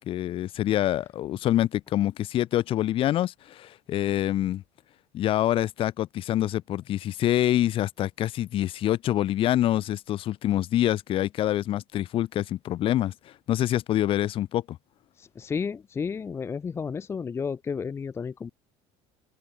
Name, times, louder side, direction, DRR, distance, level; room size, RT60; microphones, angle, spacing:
voice 1, 0.1-4.6 5.1-13.1 13.5-14.8, left 13 dB, 45° left, 1.4 m, -26 dB
voice 2, 15.2-18.5, left 6 dB, 20° left, 0.8 m, -32 dB
open air
cardioid pair, 145°, 13 cm